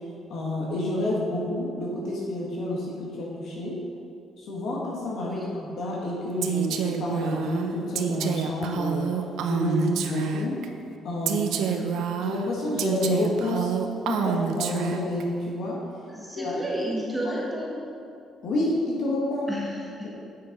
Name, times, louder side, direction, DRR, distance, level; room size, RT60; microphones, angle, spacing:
voice 1, 0.3-3.8 4.4-9.1 9.4-10.6 11.0-11.9 12.2-13.7 14.0-15.8 16.3-16.6 17.2-17.3 18.4-19.5, left 1 dB, 65° left, -3 dB, 1.8 m, -29 dB
Female speech woman speaking, 6.4-10.7 11.3-15.2, right 7 dB, 85° right, 0.6 m, -28 dB
voice 2, 11.7-12.1 16.1-17.7 19.5-20.1, equal, 5° right, -4 dB, 1.4 m, -32 dB
8.3 x 6.7 x 5.3 m, 2.5 s
cardioid pair, 140°, 0 cm